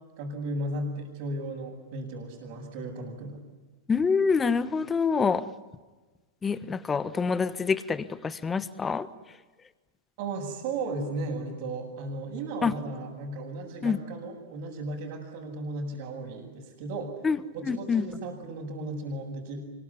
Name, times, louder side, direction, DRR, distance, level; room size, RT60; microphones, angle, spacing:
voice 1, 0.2-3.4 10.2-17.1 17.5-19.6, right 2 dB, 55° right, -5 dB, 7.0 m, -35 dB
voice 2, 3.9-5.4 6.4-9.1 12.6-12.7 13.8-14.0 17.2-18.0, left 5 dB, 15° left, 14 dB, 1.4 m, -26 dB
25.5 x 22.5 x 9.9 m, 1.3 s
hypercardioid pair, 110°, 0 cm